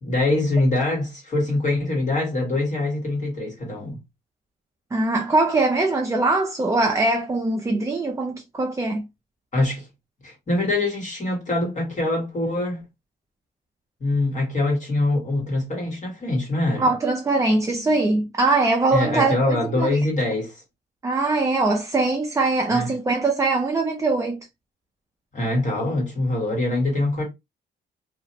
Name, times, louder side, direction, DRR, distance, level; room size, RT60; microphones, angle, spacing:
voice 1, 0.0-4.0 9.5-9.9 10.2-12.8 14.0-16.9 18.9-20.6 22.7-22.9 25.3-27.2, left 2 dB, 40° left, 1.3 m, -24 dB
voice 2, 4.9-9.0 16.8-20.0 21.0-24.4, right 2 dB, 15° right, 0.4 m, -22 dB
2.4 x 2.0 x 2.7 m
cardioid pair, 90°, 20 cm